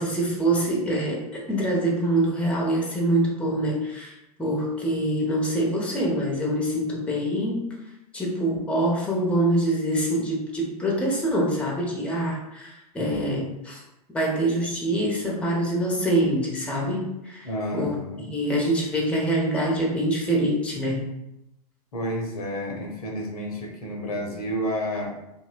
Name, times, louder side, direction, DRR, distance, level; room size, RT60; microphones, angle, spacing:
voice 1, 0.0-7.7 8.1-13.8 14.1-17.5 17.7-18.0 18.3-21.1, right 1 dB, 5° left, -2 dB, 0.6 m, -25 dB
voice 2, 13.0-13.3 17.4-18.3 21.9-25.2, equal, 70° left, 0 dB, 0.6 m, -30 dB
2.6 x 2.1 x 2.4 m, 0.88 s
figure-of-eight pair, 90°, 20 cm